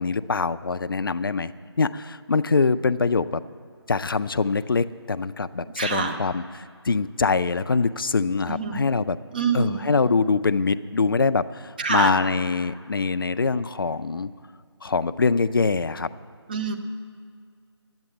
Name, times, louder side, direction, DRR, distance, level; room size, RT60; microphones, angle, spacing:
voice 1, 0.0-1.5 1.8-3.4 3.9-9.2 9.5-14.3 14.8-16.1, left 4 dB, 50° left, 13 dB, 0.5 m, -24 dB
voice 2, 5.8-6.1 8.5-8.8 9.3-9.9 11.8-12.1 16.5-16.8, right 5 dB, 20° right, 5 dB, 0.6 m, -25 dB
11.5 x 8.8 x 8.6 m, 2.1 s
figure-of-eight pair, 160°, 14 cm